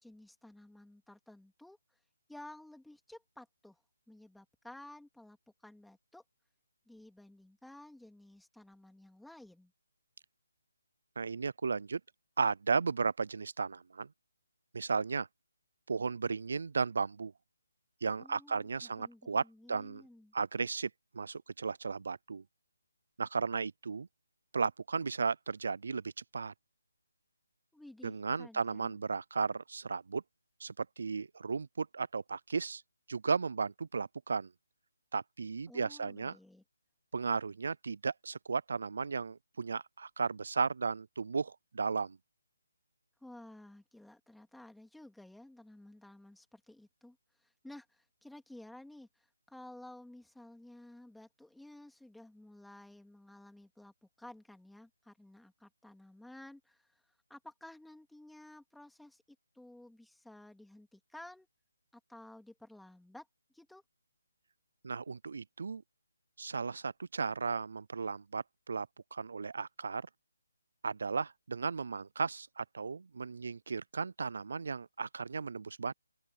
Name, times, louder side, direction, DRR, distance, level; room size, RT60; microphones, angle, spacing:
voice 1, 0.0-1.8 2.3-3.8 4.1-5.4 5.6-6.2 6.9-9.7 18.2-20.3 27.7-29.0 35.7-36.6 43.2-59.2 59.5-61.5 62.1-63.3 63.5-63.8, left 1 dB, ahead, 2.6 m, -54 dB
voice 2, 11.2-12.0 12.4-14.1 14.7-15.3 15.9-17.3 18.0-20.0 20.3-20.9 21.1-22.4 23.2-24.1 24.5-26.5 28.0-30.2 30.6-32.8 33.1-34.5 35.1-36.4 37.1-42.2 64.8-65.8 66.4-70.0 70.8-75.9, right 5 dB, 60° right, 0.4 m, -35 dB
open air
hypercardioid pair, 165°, 0 cm